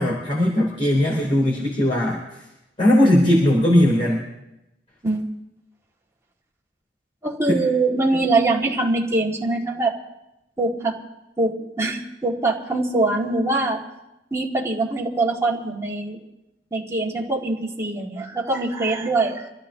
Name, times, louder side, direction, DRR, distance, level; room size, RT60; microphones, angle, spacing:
voice 1, 0.0-2.2 2.8-4.3 7.5-7.6, left 1 dB, 35° left, -5 dB, 3.6 m, -18 dB
voice 2, 7.2-9.9 10.6-11.0 11.4-13.8 14.3-16.2 16.7-19.5, right 2 dB, 15° right, -3 dB, 2.2 m, -23 dB
26.0 x 14.5 x 2.9 m, 0.89 s
head